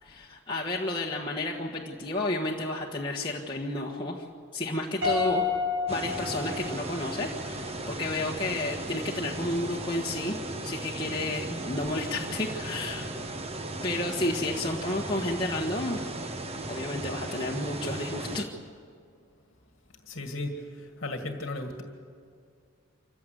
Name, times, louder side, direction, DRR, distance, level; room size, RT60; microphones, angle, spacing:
voice 1, 0.0-4.2 4.5-5.4 5.9-10.4 10.6-13.1 13.8-16.0 16.7-18.5, left 2 dB, 20° left, -3 dB, 1.5 m, -31 dB
Piano, 5.0-7.3, left 5 dB, 55° right, 7.5 m, -30 dB
sound 1, 5.9-18.4, right 2 dB, 30° right, 1.1 m, -36 dB
voice 2, 20.0-21.8, left 2 dB, 50° left, 4 dB, 2.0 m, -35 dB
26.0 x 15.5 x 9.3 m, 2.2 s
head